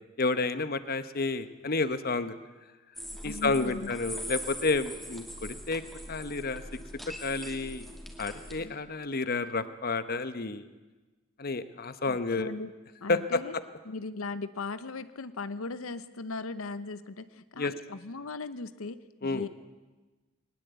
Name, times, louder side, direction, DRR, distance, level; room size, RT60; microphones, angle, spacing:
voice 1, 0.2-2.4 3.2-5.8 6.1-6.6 7.2-7.9 8.2-10.7 11.4-12.5 13.1-13.6 17.6-17.7 19.2-19.4, left 3 dB, 45° left, 12 dB, 1.0 m, -30 dB
sound 1, 3.0-8.6, equal, ahead, 2.4 m, -42 dB
voice 2, 3.2-3.9 8.6-8.8 12.1-12.7 13.0-13.6 13.9-19.5, left 3 dB, 85° left, 13 dB, 0.8 m, -38 dB
20.5 x 19.5 x 8.1 m, 1.2 s
head